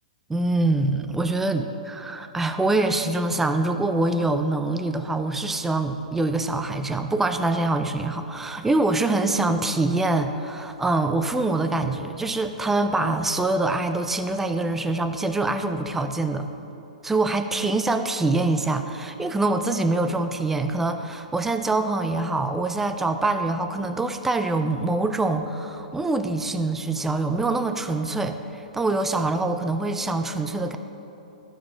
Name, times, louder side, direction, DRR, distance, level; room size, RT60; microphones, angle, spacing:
voice 1, 0.3-16.5 17.0-30.8, right 2 dB, 5° right, 8 dB, 0.4 m, -24 dB
12.5 x 5.1 x 5.8 m, 3.0 s
figure-of-eight pair, 115°, 4 cm